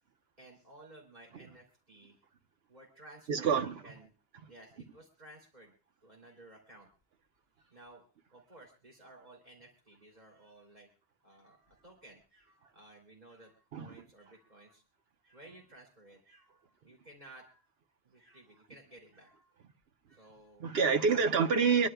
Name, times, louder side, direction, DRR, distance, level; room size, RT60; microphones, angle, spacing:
voice 1, 0.4-2.1 2.7-4.1 4.5-5.7 6.0-6.9 7.6-8.0 8.3-10.9 11.2-14.8 15.2-17.7 18.0-19.6 20.1-20.8, right 1 dB, 40° right, 3.2 m, -56 dB
voice 2, 3.3-3.7 13.7-13.9 20.6-21.9, right 5 dB, 80° right, 1.1 m, -27 dB
25.5 x 11.0 x 2.3 m
omnidirectional pair, 1.0 m